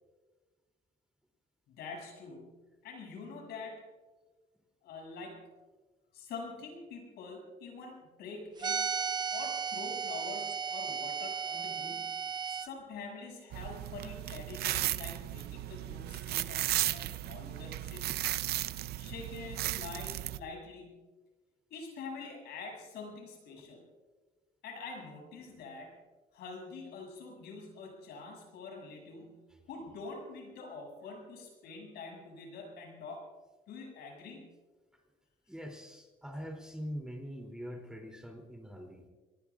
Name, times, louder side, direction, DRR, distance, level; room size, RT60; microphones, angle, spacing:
voice 1, 1.7-3.8 4.8-5.5 6.1-8.9 9.3-12.2 12.5-18.1 19.0-21.0 21.7-23.8 24.6-26.0 26.3-29.4 29.7-33.3 33.7-34.5, left 4 dB, 75° left, 0 dB, 7.1 m, -45 dB
sound 1, 8.6-12.7, right 6 dB, 25° right, 0.4 m, -35 dB
sound 2, 13.5-20.4, right 14 dB, 70° right, 0.6 m, -35 dB
voice 2, 35.5-39.1, equal, 5° right, 2 dB, 3.0 m, -43 dB
28.0 x 19.0 x 2.5 m, 1.3 s
cardioid pair, 110°, 17 cm